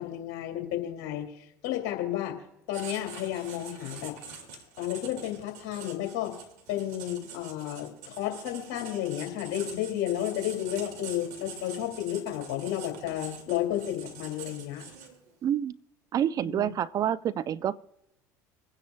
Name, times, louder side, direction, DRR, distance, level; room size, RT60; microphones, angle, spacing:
voice 1, 0.0-2.4 2.7-4.2 4.8-6.3 6.7-14.9 16.4-16.7, left 12 dB, 65° left, 3 dB, 2.4 m, -32 dB
Writing, 2.7-15.3, right 6 dB, 75° right, 2.4 m, -45 dB
voice 2, 15.4-15.8 16.1-17.8, right 10 dB, 45° right, 17 dB, 0.5 m, -28 dB
26.5 x 9.8 x 2.3 m, 0.91 s
hypercardioid pair, 70°, 9 cm